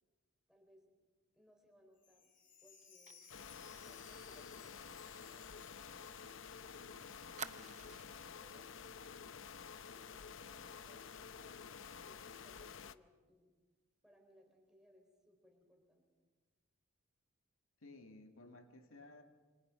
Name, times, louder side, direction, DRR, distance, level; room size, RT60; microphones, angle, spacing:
voice 1, 0.5-0.9 1.3-2.3 2.6-3.2 3.7-5.5 8.4-9.0 9.9-13.5 14.0-16.0, equal, 5° right, 1 dB, 4.5 m, -68 dB
Chime, 2.0-7.9 8.2-8.3 8.9-9.0, left 6 dB, 40° left, 3.7 m, -63 dB
Fire, 3.1-6.5 6.8-6.9 7.4-8.3 8.8-8.9 9.2-9.5, right 8 dB, 35° right, 0.6 m, -53 dB
sound 1, 3.3-12.9, left 6 dB, 65° left, 0.7 m, -51 dB
voice 2, 6.6-8.0 17.8-19.2, left 2 dB, 80° left, 5 dB, 2.0 m, -59 dB
27.0 x 26.0 x 5.1 m, 1.3 s
head